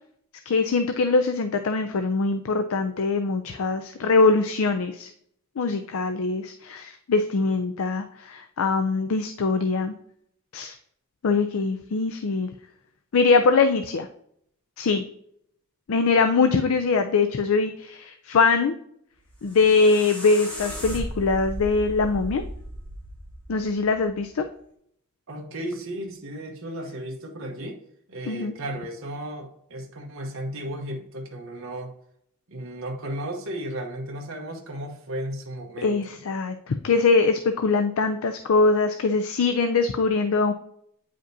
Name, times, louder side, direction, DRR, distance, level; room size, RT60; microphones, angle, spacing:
voice 1, 0.5-5.1 5.6-9.9 10.5-10.8 11.2-12.5 13.1-14.1 14.8-15.0 15.9-18.8 19.4-22.4 23.5-24.4 28.3-28.5 35.8-40.5, left 4 dB, 75° left, 8 dB, 0.5 m, -22 dB
sound 1, 19.2-24.3, equal, 5° left, 2.2 m, -36 dB
voice 2, 25.3-27.8 28.1-31.9 32.5-36.2, right 1 dB, 65° right, 1 dB, 1.0 m, -34 dB
9.1 x 5.1 x 2.7 m, 0.70 s
head